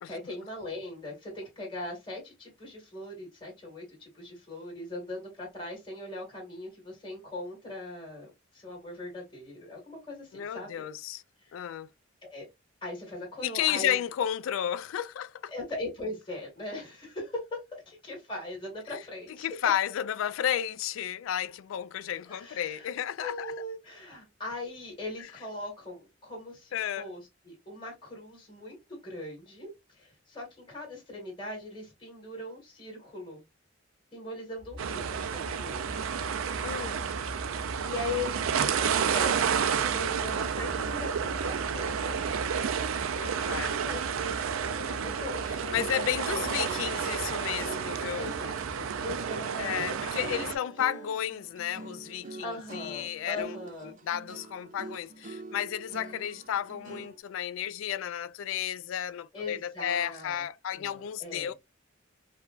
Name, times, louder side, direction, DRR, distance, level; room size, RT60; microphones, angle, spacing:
voice 1, 0.0-10.8 11.4-11.7 12.3-12.5 12.8-14.0 15.5-19.5 22.3-22.9 23.2-33.4 34.1-35.8 37.8-42.2 43.7-46.0 46.3-46.5 48.1-50.6 52.2-54.0 59.3-60.4 60.7-61.5, left 2 dB, 25° left, 1.8 m, -40 dB
voice 2, 10.3-11.2 11.5-11.9 13.4-15.5 19.4-23.5 26.7-27.1 36.6-37.1 43.1-43.8 45.7-48.3 49.6-53.6 53.8-61.5, left 10 dB, 70° left, 0.3 m, -32 dB
sound 1, 34.6-49.3, equal, 45° left, 0.9 m, -43 dB
sound 2, 34.8-50.5, right 7 dB, 90° right, 0.4 m, -31 dB
sound 3, 45.1-57.2, right 3 dB, 40° right, 0.5 m, -45 dB
4.8 x 2.2 x 2.4 m
head